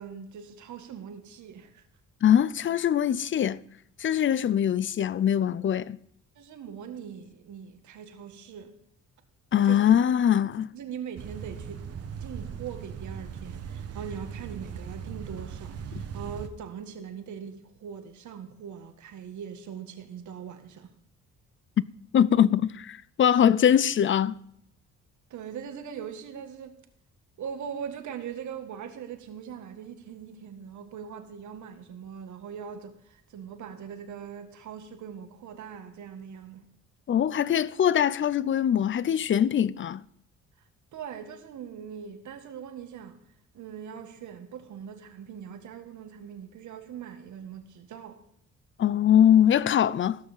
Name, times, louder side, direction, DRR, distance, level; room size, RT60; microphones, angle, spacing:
voice 1, 0.0-1.8 6.4-8.7 9.6-9.8 10.7-11.9 12.2-20.9 25.3-26.8 27.4-36.7 40.9-43.2 43.5-48.2, right 7 dB, 75° right, 1.8 m, -41 dB
voice 2, 2.2-3.6 4.0-6.0 9.5-10.7 22.1-24.4 37.1-40.0 48.8-50.2, left 9 dB, 40° left, 0.6 m, -22 dB
sound 1, 11.2-16.5, right 7 dB, 55° right, 1.4 m, -39 dB
15.5 x 6.4 x 7.2 m
cardioid pair, 90°, 30 cm